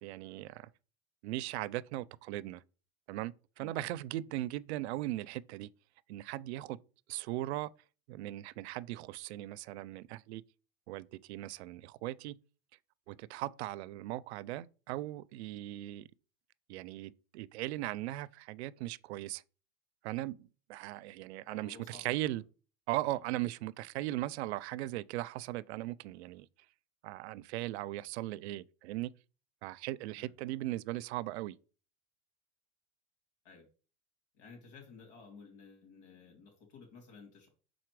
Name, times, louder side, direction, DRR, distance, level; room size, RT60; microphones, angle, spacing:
voice 1, 0.0-0.7 1.2-2.6 3.1-5.7 6.1-6.8 7.1-7.7 8.1-10.4 10.9-12.4 13.1-16.1 16.7-19.4 20.0-22.4 22.9-26.5 27.0-29.1 29.6-31.5, right 16 dB, 85° right, 0.5 m, -38 dB
voice 2, 21.5-22.4 23.1-23.3 30.1-30.3 33.4-33.7 34.3-37.5, left 5 dB, 85° left, 2.6 m, -55 dB
5.8 x 4.1 x 4.7 m
supercardioid pair, 170°, 32 cm